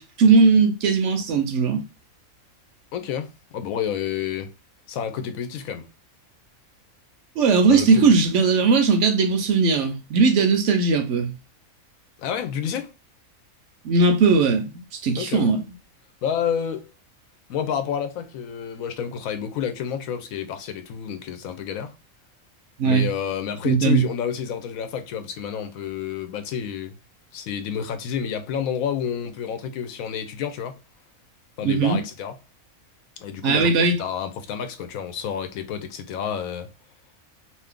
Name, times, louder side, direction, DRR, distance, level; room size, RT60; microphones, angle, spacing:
voice 1, 0.0-1.8 7.4-11.3 13.8-15.6 22.8-23.1 23.6-24.1 31.6-32.0 33.4-34.0, right 4 dB, 70° right, 0.8 m, -19 dB
voice 2, 2.9-4.5 4.9-5.9 7.7-8.1 12.2-12.9 15.2-15.5 16.2-16.9 17.5-21.9 22.8-27.0 27.3-30.8 31.6-32.3 33.2-33.7 34.0-36.7, left 8 dB, 80° left, 1.0 m, -29 dB
2.6 x 2.5 x 3.5 m
omnidirectional pair, 1.5 m